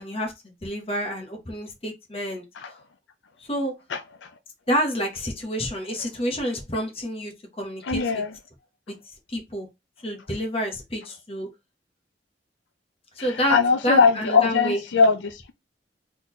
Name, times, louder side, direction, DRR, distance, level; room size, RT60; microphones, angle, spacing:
voice 1, 0.0-2.4 2.7-2.8 3.4-3.7 4.7-8.2 8.9-9.0 9.3-9.7 10.0-11.5 13.1-13.6 13.8-14.8, equal, 30° left, 1.3 m, -28 dB
voice 2, 3.9-4.3 7.8-8.3 13.2-15.5, left 5 dB, 80° left, 0.5 m, -21 dB
4.0 x 3.9 x 3.1 m
head